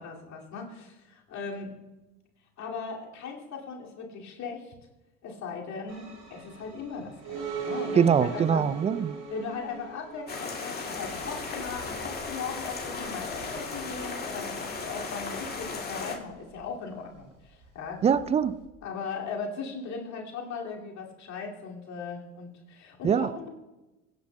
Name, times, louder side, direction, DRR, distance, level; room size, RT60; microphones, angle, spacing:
voice 1, 0.0-1.8 2.6-4.7 5.2-8.7 9.3-18.0 18.8-23.5, left 5 dB, 40° left, -1 dB, 2.4 m, -38 dB
sound 1, 5.9-18.7, right 6 dB, 45° right, 4.1 m, -42 dB
voice 2, 8.0-9.2 18.0-18.5 23.0-23.3, right 7 dB, 15° right, 16 dB, 0.4 m, -23 dB
sound 2, 10.3-16.2, left 4 dB, 25° left, 2.1 m, -36 dB
24.0 x 9.2 x 2.2 m, 1.1 s
figure-of-eight pair, 65°, 40 cm